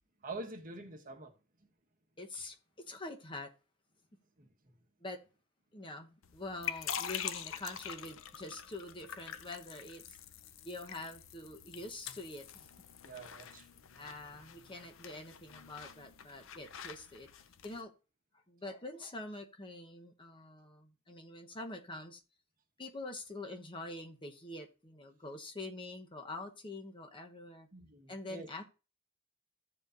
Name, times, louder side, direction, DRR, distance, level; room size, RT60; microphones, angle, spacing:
voice 1, 0.2-1.3 4.4-4.5 13.0-13.7 27.7-28.5, right 2 dB, 40° right, 1.3 m, -46 dB
voice 2, 2.2-3.5 5.0-5.2 5.7-10.2 10.6-12.7 13.9-17.3 17.6-17.9 18.3-22.2 22.8-27.7 28.1-28.6, left 2 dB, 25° left, 1.0 m, -45 dB
sound 1, 6.2-17.8, left 9 dB, 70° left, 0.6 m, -45 dB
15.0 x 5.1 x 2.6 m
head